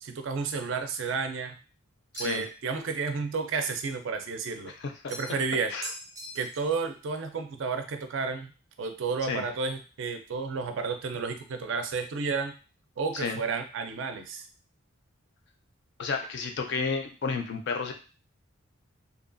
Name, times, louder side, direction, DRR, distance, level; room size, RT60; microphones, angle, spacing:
voice 1, 0.0-1.6 2.2-4.7 5.1-5.7 6.3-8.5 8.8-12.5 13.0-14.4, right 4 dB, 60° right, 7 dB, 0.4 m, -31 dB
voice 2, 2.1-2.4 5.0-5.1 5.7-5.9 9.3-9.4 13.2-13.4 16.0-17.9, left 4 dB, 55° left, 5 dB, 0.4 m, -31 dB
sound 1, 2.1-2.6 5.1-5.5 5.8-6.8, right 1 dB, 15° right, 0.6 m, -41 dB
2.7 x 2.2 x 2.5 m, 0.35 s
head